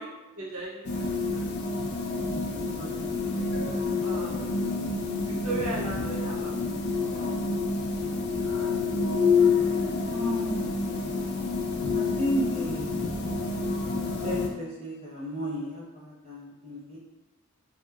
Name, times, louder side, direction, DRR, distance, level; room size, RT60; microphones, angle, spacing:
voice 1, 0.0-1.5 4.0-4.4 5.2-6.6, right 2 dB, 80° right, -5 dB, 0.7 m, -37 dB
sound 1, 0.8-14.5, left 4 dB, 50° left, 0.3 m, -28 dB
voice 2, 2.7-3.1 10.1-10.8 11.9-12.9 14.0-17.0, equal, 30° right, -7 dB, 0.5 m, -33 dB
2.8 x 2.1 x 2.2 m, 1.1 s
head